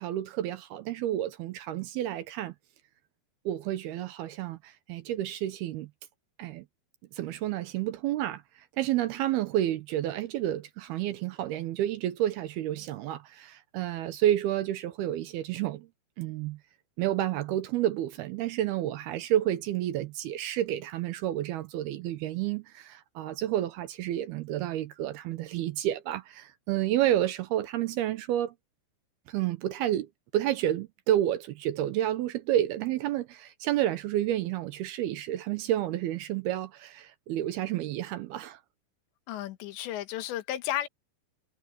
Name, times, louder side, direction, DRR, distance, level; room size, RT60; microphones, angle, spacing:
voice 1, 0.0-2.5 3.5-5.9 6.4-6.6 7.1-15.9 16.2-16.6 17.0-28.5 29.3-30.1 30.3-38.6, right 12 dB, 75° right, 2.6 m, -30 dB
voice 2, 39.3-40.9, left 12 dB, 80° left, 3.5 m, -33 dB
omnidirectional pair, 5.1 m